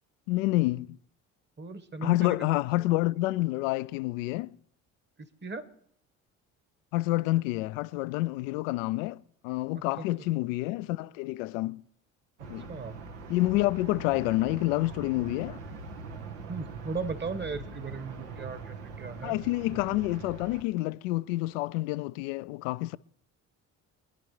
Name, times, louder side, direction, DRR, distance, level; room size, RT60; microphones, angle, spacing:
voice 1, 0.3-1.0 2.0-4.5 6.9-11.8 12.5-12.7 13.3-15.6 19.2-23.0, left 19 dB, 85° left, 0.5 m, -28 dB
voice 2, 1.6-2.4 5.4-5.7 10.0-10.1 10.4-10.5 12.7-13.0 16.5-19.4 19.7-20.0, right 4 dB, 30° right, 1.3 m, -37 dB
sound 1, 12.4-20.6, right 4 dB, 85° right, 1.2 m, -42 dB
25.5 x 10.5 x 3.2 m
hypercardioid pair, 65°, 38 cm